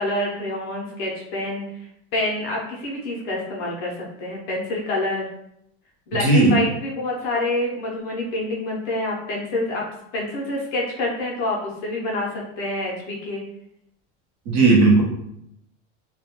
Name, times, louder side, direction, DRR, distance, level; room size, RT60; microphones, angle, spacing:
voice 1, 0.0-1.6 2.1-5.3 6.1-9.9 10.1-13.4, left 2 dB, 35° left, -3 dB, 0.5 m, -27 dB
voice 2, 6.2-6.6 14.5-15.0, right 3 dB, 40° right, -1 dB, 0.5 m, -15 dB
2.2 x 2.1 x 2.8 m, 0.76 s
supercardioid pair, 160°, 35 cm